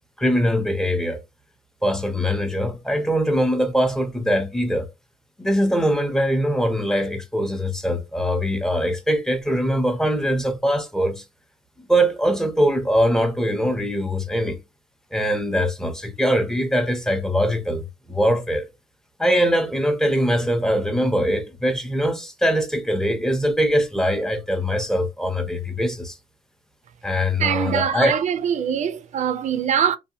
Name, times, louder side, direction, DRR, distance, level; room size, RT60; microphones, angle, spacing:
voice 1, 0.2-1.2 1.8-4.9 5.4-11.2 11.9-14.6 15.1-18.7 19.2-26.2 27.0-28.2, equal, 5° left, 0.6 m, -22 dB
voice 2, 27.4-30.0, right 8 dB, 45° right, 0.4 m, -23 dB
2.7 x 2.2 x 2.6 m
cardioid pair, 110°, 17 cm